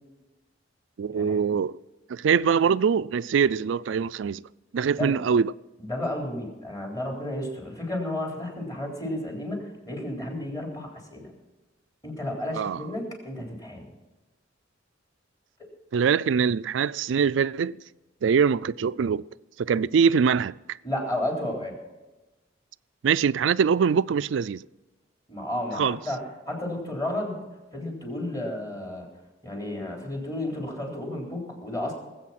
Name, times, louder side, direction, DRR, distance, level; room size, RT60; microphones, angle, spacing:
voice 1, 1.0-1.8 2.1-4.4 4.7-5.5 12.5-12.8 15.9-17.8 18.2-19.3 19.6-20.8 23.0-24.7 25.8-26.0, right 6 dB, 70° right, 0.4 m, -23 dB
voice 2, 5.8-11.3 12.0-13.9 15.6-15.7 20.8-21.8 25.3-27.4 27.7-29.1 29.4-31.9, left 1 dB, 20° left, 3.6 m, -32 dB
19.5 x 8.5 x 5.8 m
head